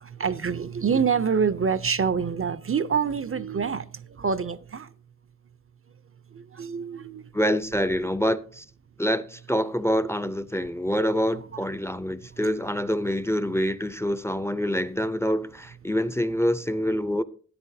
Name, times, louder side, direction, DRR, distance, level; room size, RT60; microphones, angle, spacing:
voice 1, 0.0-3.9 4.2-4.9 6.3-7.2 10.6-10.7, right 6 dB, 50° right, 0.5 m, -26 dB
voice 2, 7.3-8.7 9.0-17.2, equal, 10° left, 0.4 m, -26 dB
13.0 x 10.5 x 2.6 m
wide cardioid pair, 75°, 29 cm